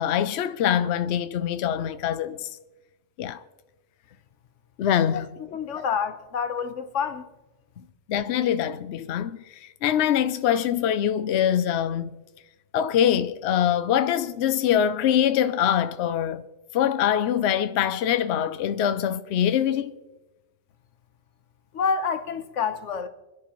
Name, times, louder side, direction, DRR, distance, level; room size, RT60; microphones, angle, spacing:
voice 1, 0.0-2.5 3.2-3.4 4.8-5.3 5.8-5.9 8.1-12.1 12.7-16.4 16.7-19.9, left 10 dB, 70° left, 0.8 m, -24 dB
voice 2, 5.5-7.2 21.7-23.1, left 6 dB, 90° left, 1.3 m, -28 dB
26.5 x 10.5 x 3.0 m
omnidirectional pair, 1.2 m